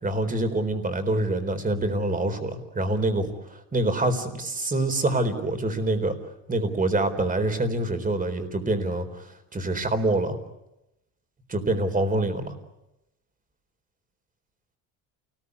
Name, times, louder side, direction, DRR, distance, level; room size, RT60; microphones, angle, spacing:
voice 1, 0.0-6.2 6.5-9.3 9.5-10.4 11.5-12.5, right 2 dB, 20° right, 8 dB, 4.2 m, -26 dB
29.0 x 20.5 x 9.7 m, 0.94 s
supercardioid pair, 100°, 40 cm